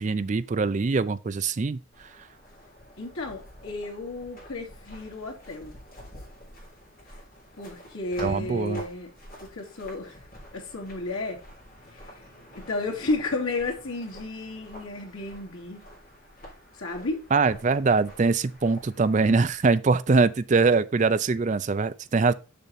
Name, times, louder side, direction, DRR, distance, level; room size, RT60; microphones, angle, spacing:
voice 1, 0.0-1.8 8.2-8.8 17.3-22.3, right 4 dB, 35° right, 0.4 m, -23 dB
sound 1, 1.9-19.6, equal, 40° left, 3.7 m, -48 dB
voice 2, 3.0-5.8 7.6-9.1 9.4-10.2 10.5-11.4 11.9-12.1 12.5-15.8 16.7-17.2, left 2 dB, 90° left, 2.4 m, -32 dB
6.8 x 5.9 x 4.1 m
head